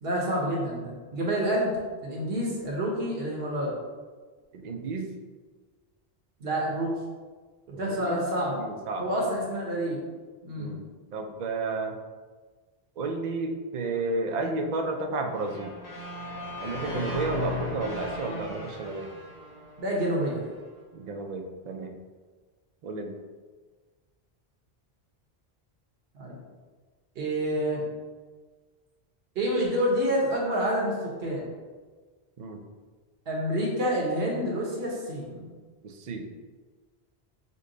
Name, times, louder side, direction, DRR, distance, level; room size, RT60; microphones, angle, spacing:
voice 1, 0.0-1.7 2.0-3.8 6.4-6.9 7.8-8.6 9.0-10.0 10.4-10.7 19.8-20.5 26.1-26.3 27.2-27.8 29.3-30.9 31.2-31.5 33.3-35.5, equal, 70° right, -3 dB, 1.1 m, -28 dB
voice 2, 4.5-5.1 7.7-8.2 8.5-9.1 10.5-10.8 11.1-12.0 13.0-15.7 16.6-19.1 20.9-21.9 22.8-23.1 32.4-32.6 35.8-36.3, right 3 dB, 55° right, 4 dB, 0.5 m, -32 dB
sound 1, 15.3-20.4, left 2 dB, 40° left, 0.9 m, -37 dB
5.2 x 2.2 x 3.8 m, 1.4 s
omnidirectional pair, 1.0 m